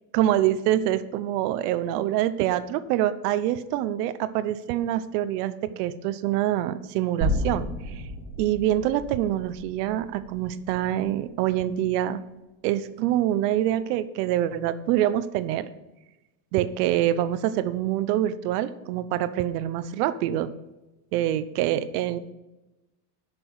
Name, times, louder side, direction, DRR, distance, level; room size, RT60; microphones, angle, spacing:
voice 1, 0.1-8.0 8.4-12.2 12.6-15.7 16.5-20.5 21.1-22.2, right 12 dB, 75° right, 14 dB, 0.9 m, -25 dB
sound 1, 7.2-11.4, equal, 20° right, 3.5 m, -32 dB
10.5 x 6.1 x 4.9 m, 1.0 s
cardioid pair, 170°, 48 cm